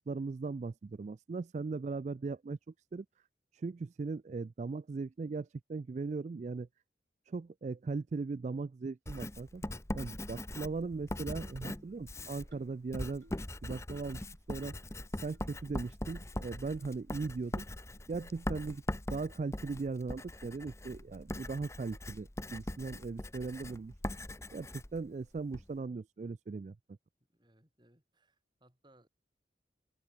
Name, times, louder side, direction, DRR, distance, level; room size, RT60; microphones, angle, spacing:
voice 1, 0.1-3.1 3.5-6.7 7.3-9.6 9.9-13.2 13.6-14.7 15.2-17.6 18.1-18.8 19.1-23.9 24.5-26.8, right 4 dB, 40° right, 0.3 m, -38 dB
Writing, 9.1-25.7, left 1 dB, 15° left, 1.0 m, -41 dB
sound 1, 12.5-12.8 13.2-13.5 13.9-14.2 14.6-14.9 15.3-15.4 16.1-16.2 16.8-16.9 17.6-17.7 18.3-18.5, right 1 dB, 80° right, 5.3 m, -63 dB
voice 2, 27.3-29.1, right 1 dB, 25° right, 6.7 m, -66 dB
head